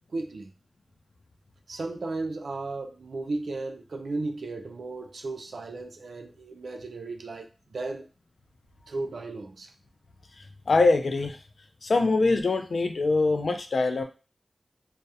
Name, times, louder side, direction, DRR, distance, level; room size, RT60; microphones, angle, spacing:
voice 1, 0.1-0.5 1.7-8.1 8.9-9.7, right 3 dB, 90° right, 4 dB, 0.4 m, -35 dB
voice 2, 10.7-11.4 11.8-14.0, left 3 dB, 75° left, 6 dB, 0.3 m, -23 dB
2.3 x 2.0 x 2.7 m, 0.33 s
cardioid pair, 50°, 0 cm